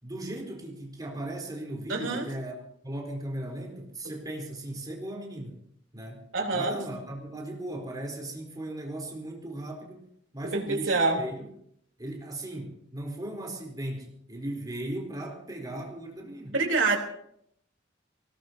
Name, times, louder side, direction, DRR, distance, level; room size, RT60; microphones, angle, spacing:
voice 1, 0.0-5.6 5.9-10.1 10.3-11.5 12.0-16.6, right 1 dB, 20° right, 1 dB, 3.9 m, -37 dB
voice 2, 1.9-2.3 6.3-6.8 10.5-11.2 16.5-17.0, right 3 dB, 85° right, 0 dB, 3.6 m, -26 dB
24.0 x 18.0 x 2.8 m, 0.69 s
head